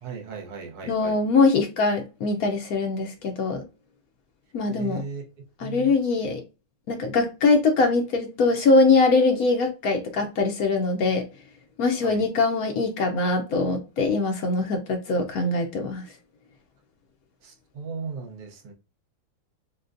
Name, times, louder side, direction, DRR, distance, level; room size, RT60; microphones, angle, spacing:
voice 1, 0.0-1.2 4.7-5.2 5.6-5.9 12.0-12.2 17.4-18.7, right 5 dB, 90° right, 2 dB, 1.9 m, -36 dB
voice 2, 0.8-3.6 4.5-5.0 5.6-6.4 6.9-11.2 11.8-16.0, left 3 dB, 75° left, 4 dB, 0.8 m, -22 dB
6.4 x 2.2 x 2.5 m, 0.30 s
omnidirectional pair, 2.3 m